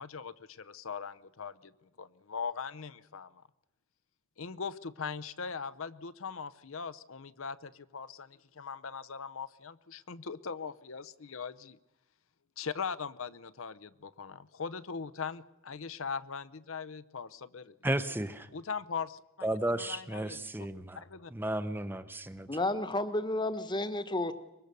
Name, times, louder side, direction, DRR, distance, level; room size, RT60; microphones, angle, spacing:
voice 1, 0.0-1.7 2.0-3.4 4.4-11.8 12.6-17.7 18.5-19.5 19.7-20.7 21.0-21.3, left 5 dB, 65° left, 0.7 m, -40 dB
voice 2, 17.8-18.5 19.4-21.0 21.3-22.5, right 1 dB, 10° right, 0.8 m, -33 dB
voice 3, 22.5-24.3, left 2 dB, 20° left, 1.2 m, -31 dB
24.0 x 21.5 x 6.8 m
head